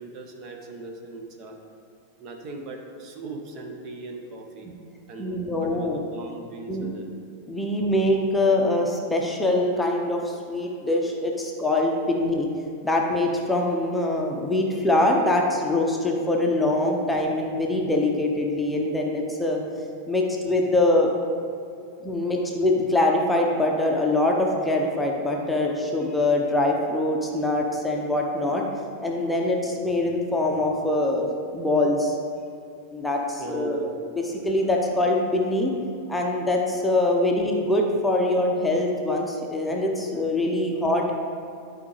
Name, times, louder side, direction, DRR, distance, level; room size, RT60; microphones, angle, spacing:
voice 1, 0.0-1.6 2.2-4.7 5.1-7.1 33.4-34.0, right 2 dB, 35° right, 2 dB, 1.0 m, -39 dB
voice 2, 5.2-6.0 6.7-7.0 7.5-12.5 12.8-19.6 20.1-21.1 22.0-28.6 29.0-31.3 31.5-32.2 32.9-33.9 34.1-35.7 36.1-41.1, left 2 dB, 5° left, -1 dB, 0.8 m, -23 dB
12.0 x 5.0 x 3.2 m, 2.5 s
figure-of-eight pair, 90°, 0 cm